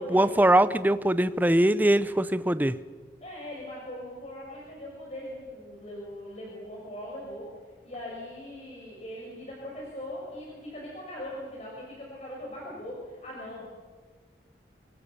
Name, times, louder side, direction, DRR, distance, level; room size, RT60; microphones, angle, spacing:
voice 1, 0.0-2.8, right 1 dB, 10° right, 14 dB, 0.7 m, -22 dB
voice 2, 3.2-7.5 7.8-13.6, left 1 dB, 35° left, -3 dB, 6.2 m, -40 dB
26.5 x 24.5 x 6.9 m, 1.4 s
head